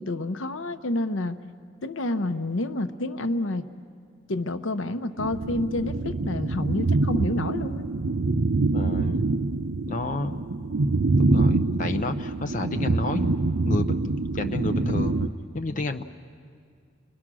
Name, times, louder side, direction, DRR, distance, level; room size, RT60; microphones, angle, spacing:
voice 1, 0.0-1.4 1.8-3.7 4.3-7.8 12.0-12.1, left 2 dB, 80° left, 10 dB, 0.8 m, -29 dB
sound 1, 5.2-15.3, right 3 dB, 70° right, 0.7 m, -25 dB
voice 2, 8.7-9.2 9.9-10.4 11.2-13.4 13.6-14.0 14.3-15.3 15.5-16.0, left 2 dB, 40° left, 7 dB, 0.7 m, -30 dB
30.0 x 21.5 x 6.2 m, 2.2 s
head